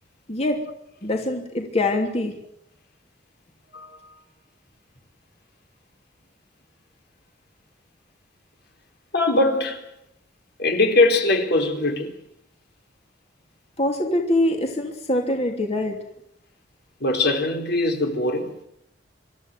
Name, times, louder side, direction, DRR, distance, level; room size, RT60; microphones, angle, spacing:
voice 1, 0.3-0.6 1.0-2.3 13.8-16.0, left 1 dB, 35° left, 3.0 m, -23 dB
voice 2, 3.7-4.2 9.1-9.9 10.6-12.2 17.0-18.6, left 2 dB, 60° left, 3.9 m, -21 dB
26.5 x 14.5 x 9.3 m
head